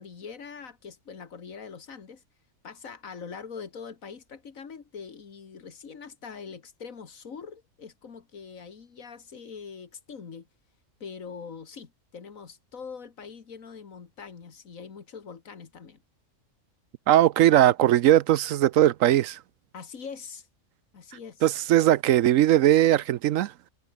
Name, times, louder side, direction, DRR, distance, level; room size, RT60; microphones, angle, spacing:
voice 1, 0.0-2.2 2.6-10.5 11.0-16.0 19.7-20.5 20.9-21.5, left 6 dB, 90° left, 2.2 m, -43 dB
voice 2, 17.1-19.4 21.4-23.5, right 13 dB, 80° right, 1.0 m, -19 dB
omnidirectional pair, 1.4 m